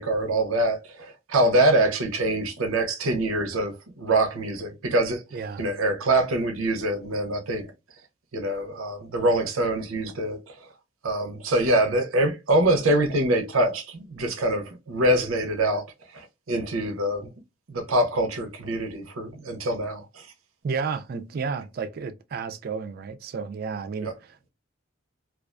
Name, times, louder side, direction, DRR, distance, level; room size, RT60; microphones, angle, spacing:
voice 1, 0.0-5.2 5.6-7.7 8.3-10.4 11.0-15.8 16.1-17.3 17.7-20.3 24.0-24.1, right 1 dB, 85° right, 0.6 m, -24 dB
voice 2, 5.3-5.6 20.6-24.5, right 5 dB, 45° right, 0.3 m, -32 dB
2.4 x 2.2 x 2.3 m
head